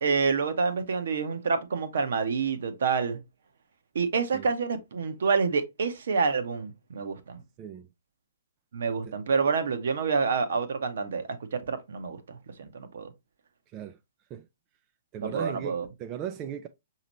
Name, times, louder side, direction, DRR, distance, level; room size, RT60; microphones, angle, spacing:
voice 1, 0.0-3.2 3.9-7.4 8.7-13.1 15.2-15.9, right 5 dB, 60° right, 0.8 m, -28 dB
voice 2, 7.6-7.9 9.1-9.2 13.7-14.0 14.3-14.5 15.1-16.7, right 9 dB, 30° right, 0.4 m, -37 dB
5.8 x 2.8 x 2.9 m
figure-of-eight pair, 120°, 0 cm